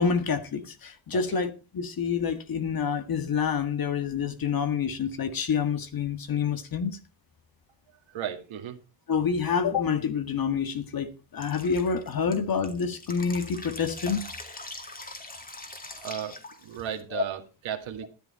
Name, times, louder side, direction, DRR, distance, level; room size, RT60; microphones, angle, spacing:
voice 1, 0.0-6.9 9.1-14.2 17.1-17.2, left 6 dB, 50° left, 1.8 m, -27 dB
voice 2, 8.1-8.8 15.9-18.1, right 9 dB, 85° right, 2.2 m, -35 dB
Drip, 11.4-17.0, left 2 dB, 20° left, 2.3 m, -42 dB
12.5 x 10.5 x 4.3 m
cardioid pair, 150°, 46 cm